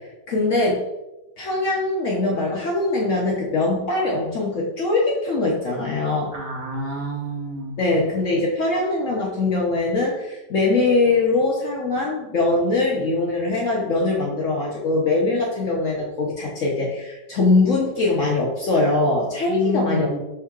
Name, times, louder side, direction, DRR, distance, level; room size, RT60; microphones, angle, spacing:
voice 1, 0.3-0.8 1.4-6.3 7.8-20.2, left 2 dB, 60° left, -3 dB, 0.9 m, -22 dB
voice 2, 6.3-7.8 19.5-20.2, left 1 dB, 60° right, -2 dB, 1.4 m, -28 dB
6.0 x 3.6 x 2.3 m, 0.99 s
omnidirectional pair, 1.9 m